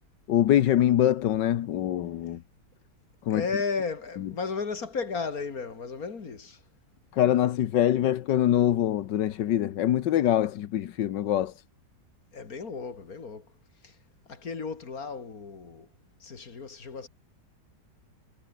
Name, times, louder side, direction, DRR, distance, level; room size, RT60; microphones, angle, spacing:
voice 1, 0.3-2.4 3.3-3.4 7.1-11.5, left 11 dB, 85° left, 1.6 m, -24 dB
voice 2, 3.3-6.6 12.3-13.5 13.8-14.0 14.3-15.9 16.2-17.1, left 5 dB, 55° left, 2.7 m, -34 dB
omnidirectional pair, 1.9 m